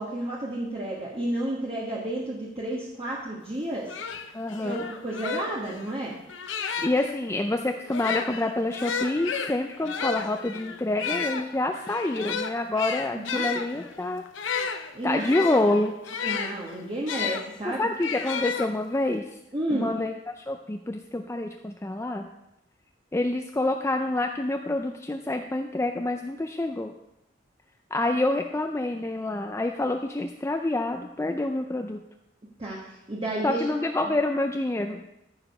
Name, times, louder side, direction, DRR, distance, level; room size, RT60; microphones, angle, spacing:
voice 1, 0.0-3.9 4.6-6.2 13.1-13.5 14.9-15.3 16.1-17.9 19.5-19.9 32.6-33.7, right 1 dB, 30° right, -4 dB, 1.4 m, -31 dB
sound 1, 3.5-3.6 3.9-7.1 7.8-17.4 18.0-19.1, left 6 dB, 75° left, 0.8 m, -32 dB
voice 2, 4.3-4.8 6.8-14.2 15.0-16.2 17.6-19.3 19.7-22.3 23.1-26.9 27.9-32.0 33.4-35.0, left 2 dB, 15° left, 4 dB, 0.4 m, -27 dB
14.0 x 4.9 x 5.5 m, 0.87 s
head